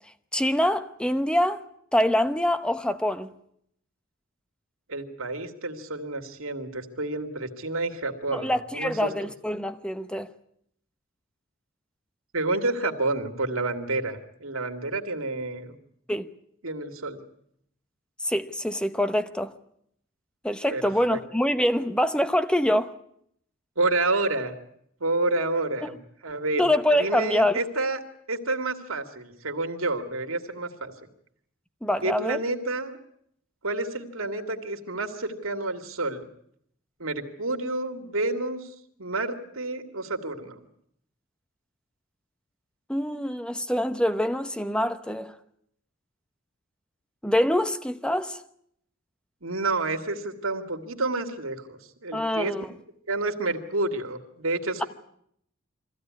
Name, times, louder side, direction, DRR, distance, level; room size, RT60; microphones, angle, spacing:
voice 1, 0.3-1.6 1.9-3.3 8.3-10.3 16.1-16.3 18.2-19.5 20.4-22.9 25.8-25.9 26.6-27.6 31.8-32.4 42.9-45.4 47.2-48.4 52.1-52.7, left 1 dB, 5° left, 0.9 m, -25 dB
voice 2, 4.9-9.1 12.3-15.8 16.6-17.2 20.7-20.8 21.1-21.2 23.8-24.5 25.0-26.7 27.0-28.0 28.3-30.9 32.0-33.0 33.6-36.3 37.0-38.7 39.0-40.6 49.4-52.5 53.1-54.8, right 2 dB, 85° right, 2.3 m, -29 dB
22.5 x 15.5 x 9.5 m
head